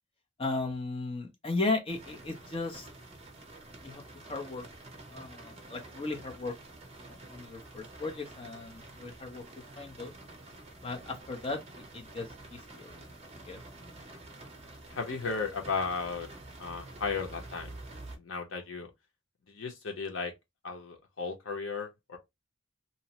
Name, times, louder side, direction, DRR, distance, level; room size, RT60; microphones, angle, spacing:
voice 1, 0.4-2.9 3.8-4.7 5.1-6.6 7.1-9.4 9.8-10.1 10.8-12.9 13.5-13.6, left 3 dB, 30° left, 0.7 m, -36 dB
sound 1, 1.9-18.2, right 2 dB, 35° right, 0.7 m, -49 dB
voice 2, 14.9-16.3 16.6-17.8 18.1-18.9 19.5-20.3 20.6-22.2, left 4 dB, 75° left, 0.8 m, -35 dB
2.8 x 2.1 x 2.8 m
head